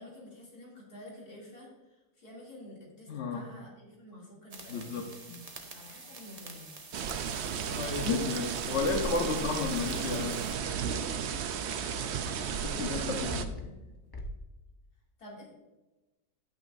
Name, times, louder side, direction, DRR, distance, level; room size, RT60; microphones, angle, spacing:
voice 1, 0.0-5.2 5.7-6.7 8.9-9.6 12.3-14.0 15.2-15.5, left 1 dB, 75° left, -4 dB, 3.3 m, -49 dB
voice 2, 3.1-3.5 4.7-5.4 7.7-10.4 12.6-13.5, left 4 dB, 50° left, 2 dB, 1.2 m, -32 dB
sound 1, 4.5-10.5, right 3 dB, 30° right, 0.8 m, -48 dB
sound 2, 6.9-13.5, right 7 dB, 65° right, 0.7 m, -34 dB
sound 3, 11.7-11.8 13.1-13.8 14.1-14.3, left 1 dB, 30° left, 0.4 m, -40 dB
10.5 x 9.2 x 2.6 m, 1.1 s
omnidirectional pair, 1.6 m